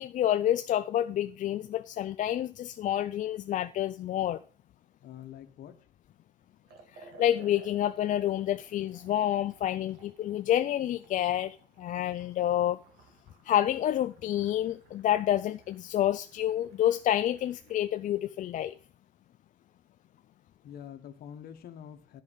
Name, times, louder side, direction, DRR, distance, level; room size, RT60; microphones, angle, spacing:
voice 1, 0.0-4.4 6.9-12.8 13.5-18.8, left 11 dB, 50° left, 0.4 m, -28 dB
voice 2, 5.0-5.8 20.6-22.2, left 9 dB, 65° left, 1.1 m, -46 dB
Liquid, 6.6-17.9, right 3 dB, 65° right, 2.1 m, -58 dB
10.5 x 5.1 x 5.1 m
cardioid pair, 110°, 17 cm